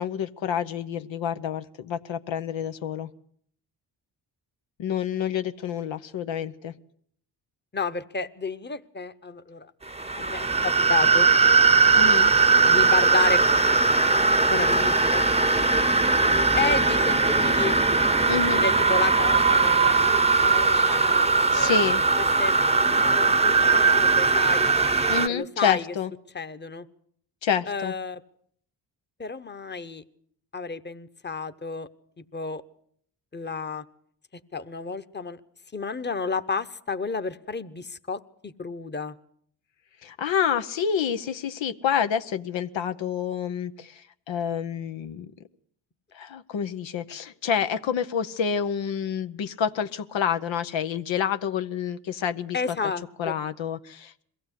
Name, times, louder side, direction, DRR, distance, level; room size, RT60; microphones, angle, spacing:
voice 1, 0.0-3.1 4.8-6.7 12.0-12.3 18.3-18.6 21.5-22.0 25.1-26.1 27.4-27.9 40.0-45.3 46.1-52.8 53.2-54.2, left 8 dB, 80° left, 9 dB, 0.9 m, -28 dB
voice 2, 7.7-9.7 10.2-11.5 12.6-13.5 14.5-16.1 16.6-17.9 18.6-21.8 22.4-22.5 22.8-24.7 25.3-25.9 26.3-26.9 27.7-28.2 29.2-30.0 30.5-31.9 32.2-32.6 33.3-33.8 34.5-35.4 35.7-39.2 52.5-53.3, left 4 dB, 25° left, 11 dB, 1.1 m, -32 dB
sound 1, 9.9-25.3, right 4 dB, 15° right, 0.8 m, -20 dB
22.0 x 15.5 x 8.3 m, 0.64 s
cardioid pair, 60°, 44 cm